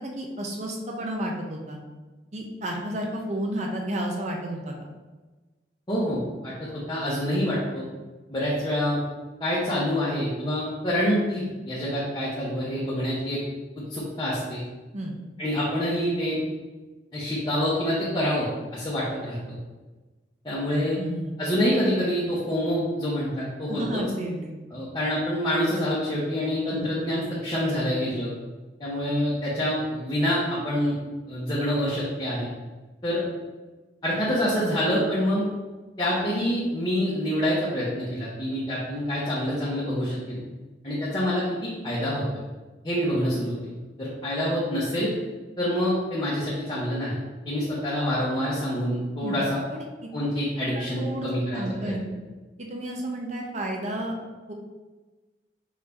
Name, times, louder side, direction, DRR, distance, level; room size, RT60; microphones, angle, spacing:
voice 1, 0.0-1.8 2.3-4.7 14.9-15.1 21.0-21.3 23.7-24.5 26.7-26.9 49.2-49.4 49.7-49.8 51.0-52.1 52.6-54.1 54.5-54.6, right 1 dB, 40° right, 0 dB, 0.5 m, -31 dB
voice 2, 5.9-7.8 8.3-9.0 9.4-13.4 13.8-14.6 15.4-16.4 17.1-19.6 20.4-21.0 21.4-24.0 24.7-28.3 28.8-31.0 31.3-32.5 33.0-33.2 34.0-35.5 36.0-40.4 40.8-42.2 42.8-43.5 44.0-45.1 45.6-47.2 47.4-49.6 50.1-51.9, equal, 25° left, -8 dB, 0.8 m, -26 dB
4.7 x 2.7 x 3.4 m, 1.2 s
head